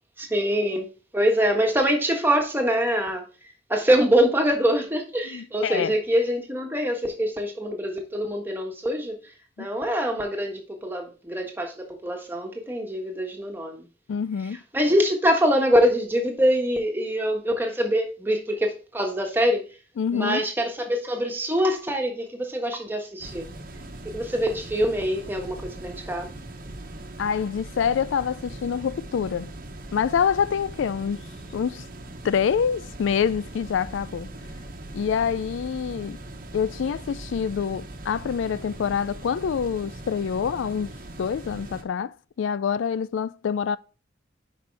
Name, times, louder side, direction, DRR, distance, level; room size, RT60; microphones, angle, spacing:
voice 1, 0.2-0.9 1.1-3.2 3.7-9.2 9.6-13.8 14.7-19.6 20.1-23.5 24.0-26.3, equal, 10° right, 1.5 m, -24 dB
voice 2, 5.3-6.0 9.6-9.7 14.1-14.6 20.0-20.4 27.2-29.5 29.9-31.3 31.5-31.8 32.2-34.3 34.9-36.2 36.5-40.9 41.2-43.8, left 7 dB, 80° left, 0.3 m, -26 dB
sound 1, 23.2-41.8, right 1 dB, 45° right, 1.1 m, -40 dB
10.0 x 5.2 x 3.3 m
head